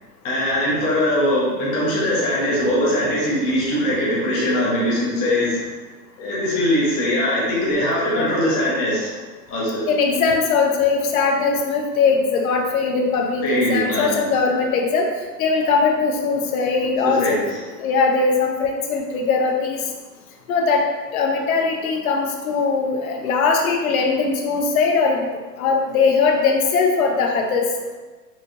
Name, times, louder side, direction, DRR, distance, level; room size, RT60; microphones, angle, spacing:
voice 1, 0.2-5.6 6.2-9.1 9.5-9.9 13.4-14.2 17.0-17.6, left 1 dB, 15° left, -6 dB, 0.5 m, -21 dB
voice 2, 9.9-15.1 15.4-17.4 17.8-19.8 20.5-20.9 21.1-25.3 25.6-27.7, left 4 dB, 60° left, 2 dB, 0.7 m, -20 dB
4.3 x 2.7 x 2.5 m, 1.3 s
hypercardioid pair, 130°, 50 cm